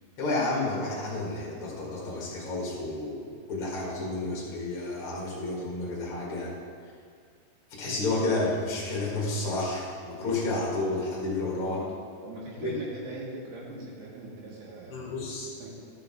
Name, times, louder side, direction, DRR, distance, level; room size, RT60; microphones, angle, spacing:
voice 1, 0.2-6.5 7.8-11.8 12.6-12.7 14.9-15.5, left 2 dB, 55° left, -5 dB, 1.6 m, -31 dB
voice 2, 12.2-15.8, right 2 dB, 65° right, -6 dB, 3.7 m, -42 dB
13.5 x 6.6 x 3.8 m, 2.2 s
omnidirectional pair, 5.3 m